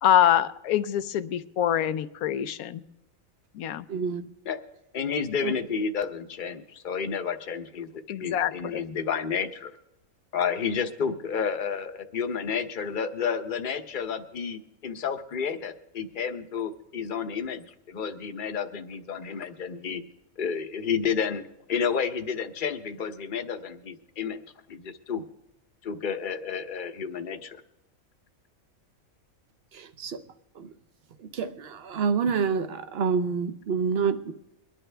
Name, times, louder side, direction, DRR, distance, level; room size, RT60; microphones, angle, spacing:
voice 1, 0.0-2.8 3.5-3.9 8.1-8.8, left 10 dB, 85° left, 1.1 m, -25 dB
voice 2, 3.9-4.3 5.4-5.5 29.7-30.2 30.6-30.7 31.2-34.3, right 5 dB, 50° right, 0.9 m, -28 dB
voice 3, 4.9-9.7 10.3-20.0 20.4-21.4 21.7-25.2 25.8-27.6, left 6 dB, 40° left, 0.9 m, -31 dB
23.0 x 10.5 x 3.4 m
omnidirectional pair, 1.5 m